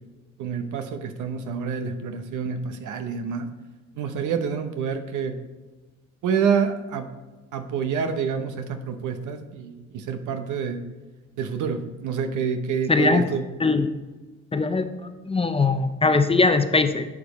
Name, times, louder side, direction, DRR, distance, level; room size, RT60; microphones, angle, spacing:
voice 1, 0.4-3.5 3.9-5.4 6.2-7.1 7.5-10.8 11.4-13.4, right 6 dB, 80° right, 8 dB, 0.9 m, -27 dB
voice 2, 12.9-13.2 13.6-13.9 14.5-17.1, left 3 dB, 20° left, 8 dB, 0.6 m, -21 dB
11.0 x 5.2 x 3.1 m, 1.3 s
cardioid pair, 90°, 30 cm